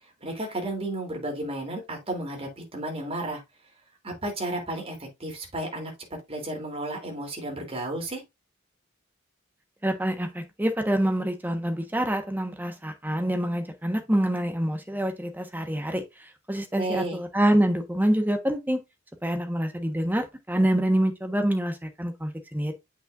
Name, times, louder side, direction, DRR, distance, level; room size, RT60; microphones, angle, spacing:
voice 1, 0.2-3.4 4.0-5.9 6.3-8.2 16.7-17.2, right 1 dB, 30° right, 3.1 m, -32 dB
voice 2, 9.8-16.0 16.5-18.8 19.2-22.7, right 1 dB, 10° right, 1.2 m, -26 dB
8.5 x 5.6 x 2.5 m
head